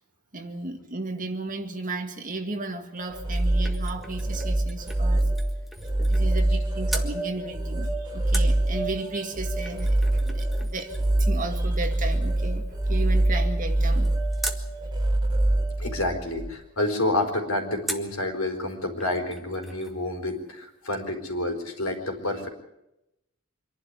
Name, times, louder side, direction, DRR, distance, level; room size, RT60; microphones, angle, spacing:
voice 1, 0.3-5.3 6.0-10.9 11.2-14.1, right 2 dB, 40° right, 2.0 m, -34 dB
sound 1, 3.0-6.6 6.9-7.1 8.3-14.7 17.9-18.2 18.7-18.8 19.0-20.0 20.3-20.4, right 1 dB, ahead, 1.5 m, -40 dB
sound 2, 3.0-16.5, right 1 dB, 20° right, 4.1 m, -25 dB
voice 2, 15.8-22.5, left 1 dB, 90° left, 4.2 m, -29 dB
25.5 x 11.5 x 9.8 m
head